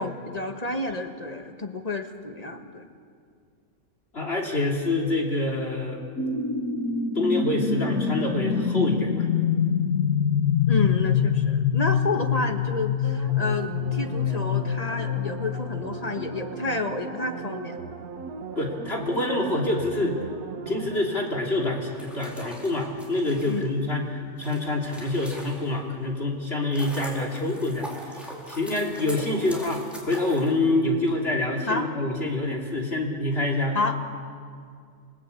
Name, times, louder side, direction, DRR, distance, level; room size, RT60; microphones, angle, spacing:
voice 1, 0.0-2.9 10.7-17.8 23.4-23.7 31.7-31.9 33.7-34.0, left 2 dB, 25° left, 5 dB, 1.6 m, -30 dB
voice 2, 4.1-6.0 7.1-9.3 18.6-20.2 20.7-33.8, left 2 dB, 40° left, 0 dB, 3.4 m, -26 dB
sound 1, 6.2-16.5, left 7 dB, 70° left, 1.8 m, -25 dB
sound 2, 13.0-22.4 22.8-22.9, right 5 dB, 90° right, 1.9 m, -38 dB
sound 3, 21.8-25.9 26.4-31.1, equal, ahead, 4.4 m, -42 dB
28.5 x 19.0 x 8.4 m, 2.2 s
omnidirectional pair, 1.6 m